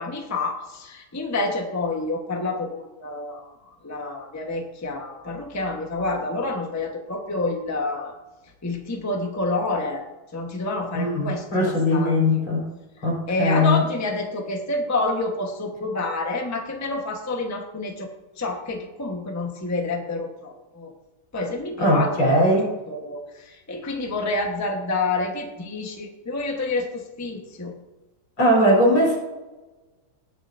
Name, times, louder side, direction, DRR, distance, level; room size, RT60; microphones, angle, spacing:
voice 1, 0.0-3.5 3.8-8.1 8.6-10.0 10.3-12.4 13.3-18.1 18.4-20.9 21.3-22.4 22.9-27.7, left 2 dB, 10° left, 2 dB, 0.8 m, -28 dB
voice 2, 10.9-12.6 13.0-13.8 21.8-22.7 28.4-29.2, left 1 dB, 85° left, -3 dB, 4.7 m, -20 dB
19.5 x 6.8 x 2.6 m, 1.1 s
omnidirectional pair, 2.2 m